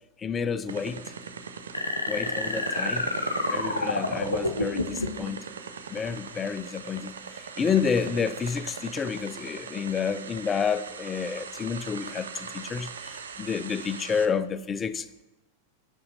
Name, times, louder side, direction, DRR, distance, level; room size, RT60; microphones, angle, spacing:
voice 1, 0.2-1.0 2.1-3.1 3.5-5.4 5.9-7.2 7.6-15.2, left 6 dB, 20° left, 0.3 m, -29 dB
sound 1, 0.7-14.3, right 6 dB, 65° right, 0.5 m, -40 dB
sound 2, 1.7-5.3, left 2 dB, 80° left, 0.6 m, -29 dB
5.6 x 5.3 x 6.3 m
figure-of-eight pair, 90°, 0 cm